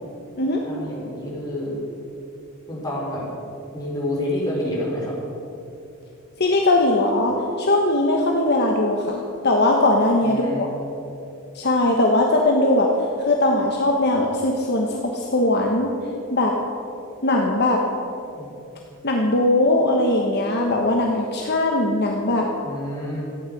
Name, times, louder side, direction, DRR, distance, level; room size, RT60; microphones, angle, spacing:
voice 1, 0.6-1.8 2.7-3.3 3.7-5.2 10.2-10.7 18.4-18.5 22.6-23.2, left 1 dB, 15° left, -5 dB, 4.4 m, -28 dB
voice 2, 6.4-10.8 11.5-12.9 13.2-15.9 16.3-16.5 17.2-17.8 19.0-22.5, left 2 dB, 50° left, 0 dB, 1.2 m, -20 dB
13.0 x 8.9 x 9.2 m, 2.8 s
head